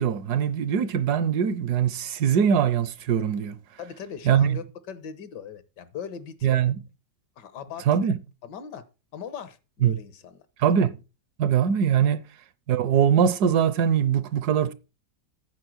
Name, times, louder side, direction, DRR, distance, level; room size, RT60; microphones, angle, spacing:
voice 1, 0.0-3.6 4.3-4.6 6.4-6.8 7.9-8.2 9.8-9.9 10.6-10.9 11.4-12.3 12.7-14.7, right 8 dB, 70° right, 1.2 m, -22 dB
voice 2, 3.8-6.5 7.4-8.1 8.4-8.9 9.1-10.4, left 7 dB, 75° left, 1.7 m, -39 dB
9.2 x 6.8 x 6.1 m
omnidirectional pair, 1.9 m